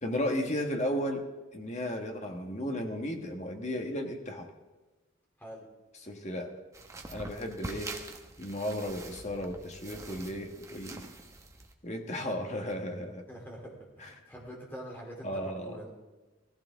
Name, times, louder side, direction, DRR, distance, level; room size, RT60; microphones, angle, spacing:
voice 1, 0.0-4.5 6.0-6.5 7.1-8.0 8.4-11.2 11.8-13.3 14.0-14.1 15.2-15.8, equal, 35° left, 3 dB, 1.5 m, -34 dB
sound 1, 6.7-11.7, right 2 dB, 15° right, 0.9 m, -45 dB
voice 2, 13.3-15.9, equal, 10° left, -2 dB, 3.0 m, -45 dB
17.5 x 15.0 x 3.6 m, 1.2 s
head